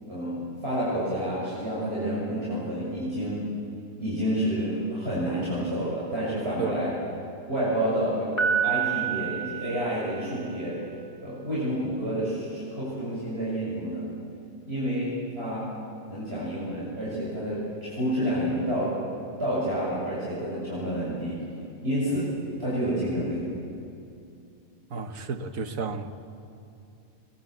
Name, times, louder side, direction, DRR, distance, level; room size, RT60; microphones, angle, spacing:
voice 1, 0.1-3.5 4.0-6.9 7.5-10.8 11.2-14.0 14.6-15.7 16.1-19.0 19.4-21.4 21.8-22.3 22.6-23.4, equal, 45° right, -9 dB, 7.2 m, -29 dB
Piano, 8.4-10.5, right 8 dB, 45° left, 3.3 m, -28 dB
voice 2, 24.9-26.1, right 4 dB, 65° right, 8 dB, 1.7 m, -32 dB
23.5 x 22.0 x 8.4 m, 2.7 s
omnidirectional pair, 1.5 m